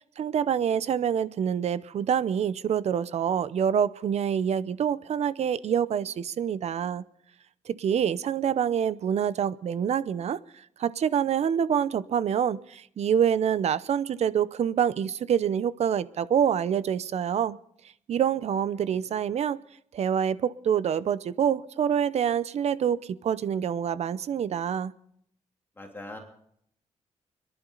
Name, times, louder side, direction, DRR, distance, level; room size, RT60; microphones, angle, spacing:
voice 1, 0.0-7.0 7.7-10.4 10.8-17.6 18.1-19.6 19.9-24.9, right 8 dB, 65° right, 0.7 m, -26 dB
voice 2, 25.8-26.2, left 2 dB, 20° left, 2.9 m, -42 dB
30.0 x 11.0 x 3.9 m
cardioid pair, 105°, 12 cm